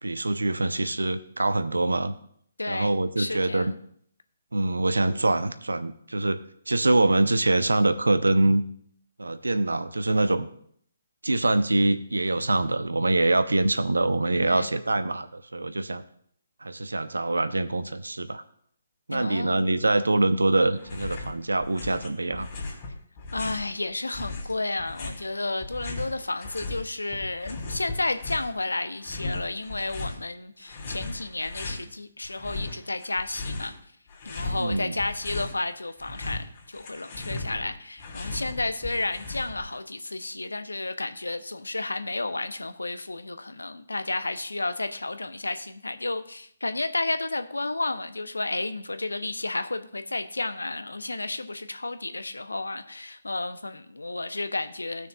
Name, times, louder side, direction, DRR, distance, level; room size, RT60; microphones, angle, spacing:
voice 1, 0.0-2.1 2.7-3.7 4.5-6.4 6.7-8.6 9.2-10.5 11.2-16.0 16.6-18.4 19.1-22.5 34.6-34.9, right 2 dB, 80° right, 12 dB, 0.6 m, -24 dB
voice 2, 2.6-3.8 14.4-14.7 19.1-19.7 23.3-33.7 34.2-55.1, left 2 dB, 85° left, 10 dB, 0.7 m, -32 dB
sound 1, 20.8-21.3 21.6-23.7 24.1-26.8 27.1-28.6 29.0-30.2 30.7-31.8 32.2-33.8 34.1-35.6 35.9-39.8, left 2 dB, 35° left, 2.7 m, -36 dB
17.0 x 6.3 x 2.3 m, 0.64 s
figure-of-eight pair, 140°, 0 cm